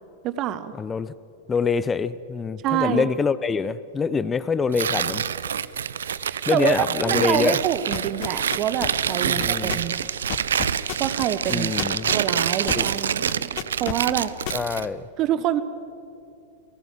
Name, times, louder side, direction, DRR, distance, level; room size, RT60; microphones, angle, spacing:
voice 1, 0.2-0.7 2.6-3.1 6.3-6.7 7.0-10.1 11.0-11.8 12.1-14.3 15.2-15.6, right 11 dB, 35° right, 14 dB, 1.1 m, -26 dB
voice 2, 0.8-1.1 1.5-5.3 6.5-7.6 9.2-9.8 11.5-12.1 12.7-13.0 14.5-15.1, left 5 dB, 15° left, 17 dB, 0.7 m, -25 dB
Tearing, 4.7-14.9, right 8 dB, 65° right, 0.6 m, -26 dB
sound 1, 7.9-13.0 13.3-14.8, left 19 dB, 45° left, 1.2 m, -31 dB
28.0 x 18.5 x 7.6 m, 2.6 s
figure-of-eight pair, 90°, 0 cm